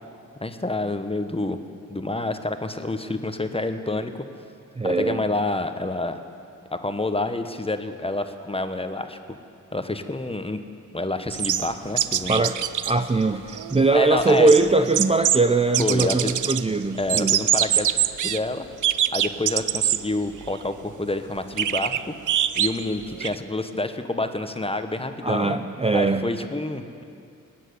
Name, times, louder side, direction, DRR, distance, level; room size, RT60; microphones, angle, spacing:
voice 1, 0.4-1.6 1.9-4.2 4.8-6.2 6.7-9.2 9.7-10.6 10.9-12.4 13.9-14.5 15.8-16.3 17.0-17.9 18.2-18.7 19.1-22.0 22.5-25.6 25.9-27.0, left 2 dB, 20° left, 8 dB, 1.1 m, -28 dB
voice 2, 4.8-5.2 12.3-12.6 12.9-17.4 25.2-26.3, right 3 dB, 20° right, 8 dB, 0.6 m, -21 dB
sound 1, 11.3-12.9 13.2-13.3 13.5-15.4 15.7-16.6 17.0-18.4 18.8-20.0 20.4-20.5 21.6-23.4, right 10 dB, 70° right, 0.5 m, -24 dB
18.5 x 7.6 x 9.5 m, 2.6 s
cardioid pair, 45°, 32 cm